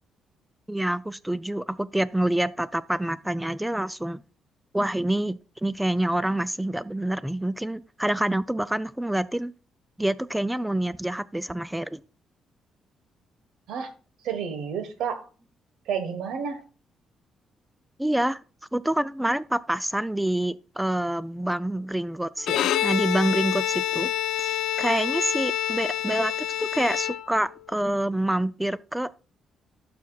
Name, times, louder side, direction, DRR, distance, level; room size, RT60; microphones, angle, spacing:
voice 1, 0.7-4.2 4.7-9.5 10.0-12.0 18.0-18.4 18.7-24.1 24.4-29.1, right 1 dB, 5° right, 0.3 m, -27 dB
voice 2, 14.2-15.3 15.8-16.6, right 7 dB, 80° right, 1.2 m, -30 dB
Bowed string instrument, 22.4-27.6, left 12 dB, 85° left, 0.4 m, -27 dB
12.0 x 5.9 x 2.3 m
cardioid pair, 90°, 0 cm